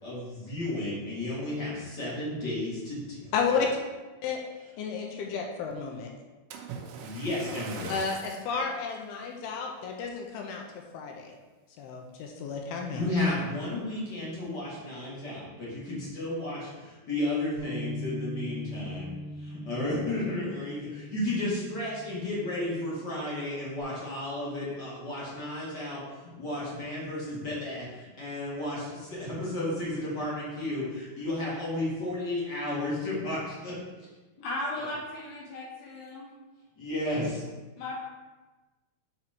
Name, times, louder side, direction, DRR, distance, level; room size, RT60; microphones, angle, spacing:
voice 1, 0.0-3.3 7.0-8.0 12.9-33.8 34.8-34.9 36.8-37.4, left 1 dB, 40° left, -7 dB, 1.6 m, -33 dB
voice 2, 3.3-3.8 4.2-4.4 4.8-6.1 7.9-10.6 10.9-11.3 11.8-13.0, left 5 dB, 80° left, 2 dB, 2.4 m, -32 dB
Splash splatter, 6.5-8.5 9.2-9.4 10.0-10.1, right 6 dB, 90° right, 1.9 m, -42 dB
Bass guitar, 17.6-23.8, equal, 65° right, 2.0 m, -41 dB
voice 3, 34.4-36.3 37.8-38.0, left 1 dB, 65° left, -3 dB, 2.1 m, -36 dB
5.8 x 5.0 x 4.4 m, 1.2 s
omnidirectional pair, 4.8 m